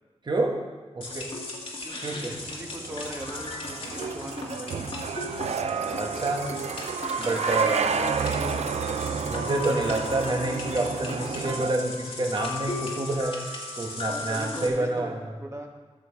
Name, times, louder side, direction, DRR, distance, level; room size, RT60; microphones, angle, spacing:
voice 1, 0.2-0.6 0.9-1.3 2.0-2.3 5.9-6.5 7.2-7.9 9.3-13.4 13.8-15.2, right 2 dB, 45° right, 1 dB, 1.6 m, -28 dB
sound 1, 1.0-14.7, left 3 dB, 60° left, 2.0 m, -36 dB
voice 2, 1.8-4.9 7.4-8.6 14.1-15.1 15.4-15.7, right 1 dB, 25° right, 1 dB, 1.5 m, -39 dB
sound 2, 2.4-11.7, right 6 dB, 85° right, 0.5 m, -31 dB
14.5 x 6.4 x 4.8 m, 1.3 s
wide cardioid pair, 100°, 11 cm